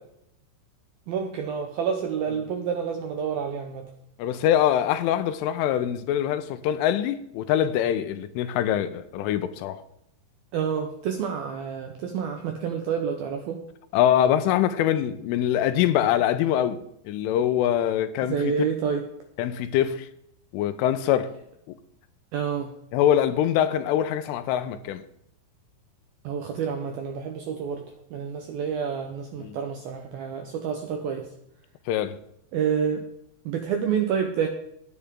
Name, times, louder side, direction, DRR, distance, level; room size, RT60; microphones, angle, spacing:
voice 1, 1.1-3.9 10.5-13.6 18.3-19.0 22.3-22.7 26.2-27.8 28.1-31.3 32.5-33.0 33.5-34.5, right 7 dB, 75° right, 2.2 m, -28 dB
voice 2, 4.2-9.8 13.9-16.8 17.1-18.5 19.4-20.1 20.5-21.3 22.9-25.0 29.4-29.6 31.9-32.2, left 10 dB, 85° left, 3.4 m, -24 dB
17.0 x 9.8 x 3.7 m
omnidirectional pair, 5.6 m